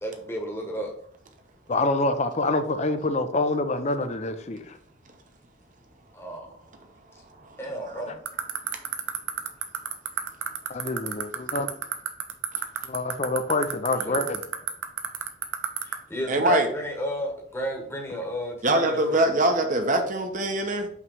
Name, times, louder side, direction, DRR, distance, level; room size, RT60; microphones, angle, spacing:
voice 1, 0.0-0.9 6.1-6.5 7.6-8.2 13.9-14.3 15.8-19.4, equal, 15° left, 1.2 m, -33 dB
voice 2, 1.7-4.8 10.7-11.7 12.9-14.4, left 2 dB, 35° left, 0.6 m, -26 dB
sound 1, 8.2-15.9, right 10 dB, 75° right, 0.8 m, -26 dB
voice 3, 16.3-16.7 18.6-20.9, right 1 dB, 40° right, 0.9 m, -23 dB
5.8 x 3.2 x 5.4 m
head